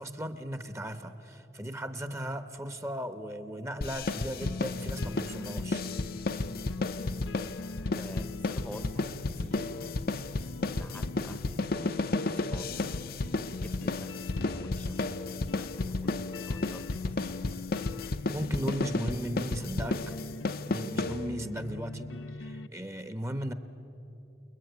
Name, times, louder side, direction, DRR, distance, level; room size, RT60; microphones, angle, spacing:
voice 1, 0.0-5.8 18.3-20.1 20.7-23.5, equal, 15° right, 10 dB, 1.0 m, -37 dB
sound 1, 3.8-21.6, left 2 dB, 50° left, 0.7 m, -33 dB
sound 2, 4.4-22.7, left 4 dB, 85° left, 0.6 m, -41 dB
voice 2, 7.9-9.9 10.7-12.9 13.6-17.4, equal, 5° left, 9 dB, 0.9 m, -48 dB
29.5 x 21.0 x 9.5 m, 2.9 s
head